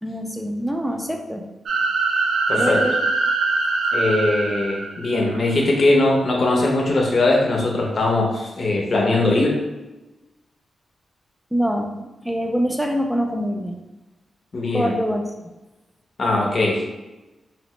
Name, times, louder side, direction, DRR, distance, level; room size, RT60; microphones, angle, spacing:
voice 1, 0.0-1.4 2.6-3.0 11.5-13.8 14.7-15.2, equal, 5° right, 3 dB, 0.5 m, -24 dB
sound 1, 1.6-5.4, right 3 dB, 80° right, 0.4 m, -23 dB
voice 2, 2.5-2.8 3.9-9.5 14.5-14.9 16.2-17.0, left 2 dB, 55° left, -1 dB, 0.8 m, -20 dB
3.0 x 2.0 x 3.0 m, 1.1 s
cardioid pair, 55°, 0 cm